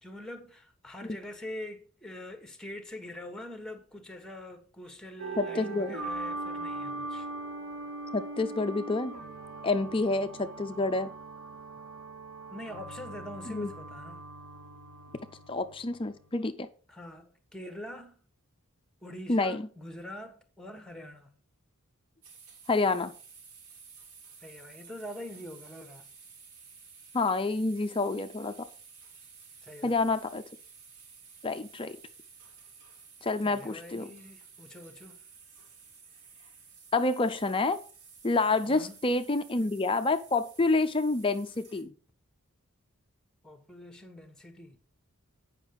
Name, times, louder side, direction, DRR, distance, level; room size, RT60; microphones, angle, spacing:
voice 1, 0.0-7.3 12.5-14.3 16.9-18.2 19.0-21.4 24.4-26.1 29.6-30.1 33.4-35.2 38.7-39.0 43.4-44.8, left 1 dB, 5° left, 1.2 m, -44 dB
sound 1, 5.2-16.2, right 2 dB, 75° right, 3.1 m, -40 dB
voice 2, 5.4-5.9 8.1-9.1 9.6-11.1 13.5-13.7 15.5-16.7 19.3-19.6 22.7-23.1 27.1-28.7 29.8-30.4 31.4-32.0 33.2-34.1 36.9-37.8 38.2-41.9, left 3 dB, 25° left, 0.5 m, -28 dB
sound 2, 22.2-41.8, right 5 dB, 90° right, 4.4 m, -53 dB
9.1 x 5.7 x 5.2 m
head